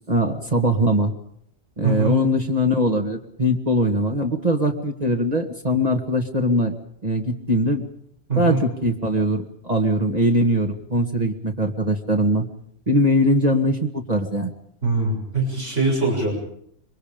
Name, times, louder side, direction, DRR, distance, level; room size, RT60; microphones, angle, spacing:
voice 1, 0.1-1.1 1.8-6.7 7.0-7.8 8.4-12.5 12.9-14.5, equal, 30° right, 1 dB, 2.0 m, -21 dB
voice 2, 1.8-2.2 8.3-8.6 14.8-16.3, right 3 dB, 70° right, 0 dB, 7.1 m, -22 dB
26.0 x 23.0 x 5.2 m, 0.68 s
omnidirectional pair, 1.3 m